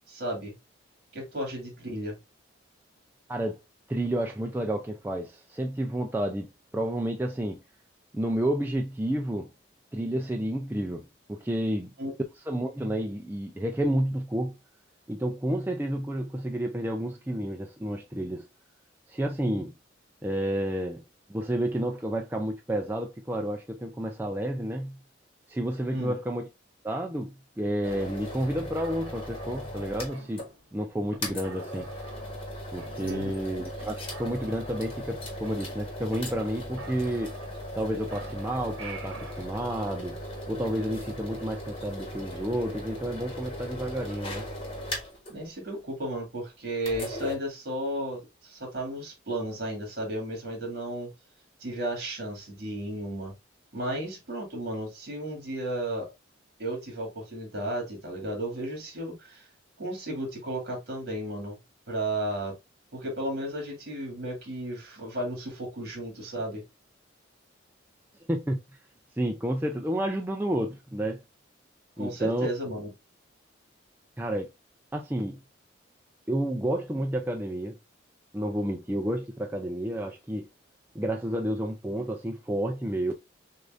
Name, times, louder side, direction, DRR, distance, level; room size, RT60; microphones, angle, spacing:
voice 1, 0.1-0.5 1.1-2.2 12.0-12.1 25.9-26.2 33.0-33.4 45.3-51.1 51.6-53.3 53.7-56.1 56.6-59.5 59.8-61.6 61.9-62.5 62.9-66.6 72.0-72.9, right 1 dB, 55° right, 2.2 m, -34 dB
voice 2, 3.9-7.6 8.1-9.5 9.9-11.9 12.5-14.6 15.1-18.5 19.1-19.7 20.2-21.0 21.3-25.0 25.5-26.5 26.8-31.9 32.7-37.4 37.7-40.2 40.5-44.5 68.3-68.6 69.1-71.2 72.0-72.5 74.2-74.5 74.9-75.4 76.3-77.8 78.3-80.5 80.9-83.1, right 1 dB, 10° right, 0.4 m, -30 dB
sound 1, 27.8-30.5 30.8-30.9 31.2-45.3 46.8-47.4, equal, 30° left, 1.2 m, -38 dB
sound 2, 28.8-30.7 31.1-31.2 31.4-32.5 32.8-33.5 33.8-33.9 34.1-36.2 36.4-36.5 36.8-37.8 38.1-39.4, right 4 dB, 80° right, 1.0 m, -48 dB
6.5 x 2.5 x 2.5 m
head